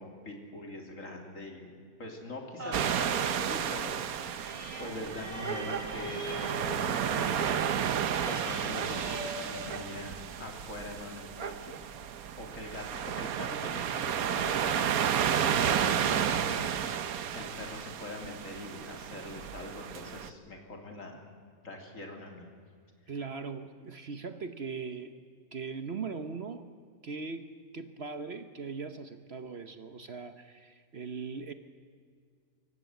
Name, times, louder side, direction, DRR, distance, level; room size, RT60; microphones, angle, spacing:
voice 1, 0.0-1.7 2.0-7.8 8.3-11.8 12.4-21.2 21.6-22.5, left 2 dB, 60° left, 2 dB, 3.5 m, -43 dB
sound 1, 2.6-10.4 10.9-11.0, right 1 dB, 30° right, 4.1 m, -43 dB
sound 2, 2.7-20.3, right 8 dB, 75° right, 1.3 m, -32 dB
voice 2, 23.1-25.1 25.5-26.6 27.0-27.5 27.7-31.5, right 5 dB, 50° right, 9 dB, 1.1 m, -39 dB
26.0 x 15.0 x 9.2 m, 2.1 s
omnidirectional pair, 1.5 m